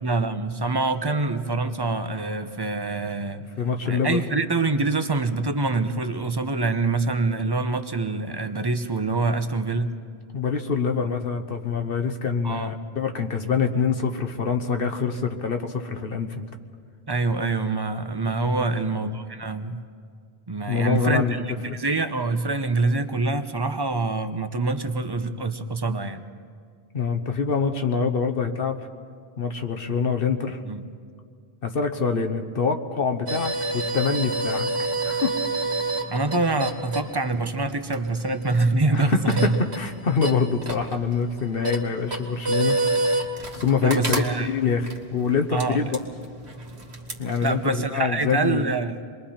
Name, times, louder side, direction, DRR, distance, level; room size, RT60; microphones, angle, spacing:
voice 1, 0.0-3.4 3.9-9.9 12.4-12.7 17.1-19.8 20.5-21.3 21.6-26.2 30.6-30.8 36.1-39.5 43.8-44.5 45.5-45.8 47.4-49.0, right 3 dB, 25° right, 8 dB, 0.9 m, -25 dB
voice 2, 3.6-4.2 10.3-16.5 18.6-18.8 20.7-21.8 26.9-28.8 29.4-30.6 31.6-35.3 38.9-43.0 43.5-45.9 47.2-48.7, left 5 dB, 60° left, 5 dB, 1.2 m, -25 dB
sound 1, 33.3-47.7, right 2 dB, 75° right, 2.2 m, -29 dB
28.0 x 22.0 x 4.4 m, 2.1 s
omnidirectional pair, 1.1 m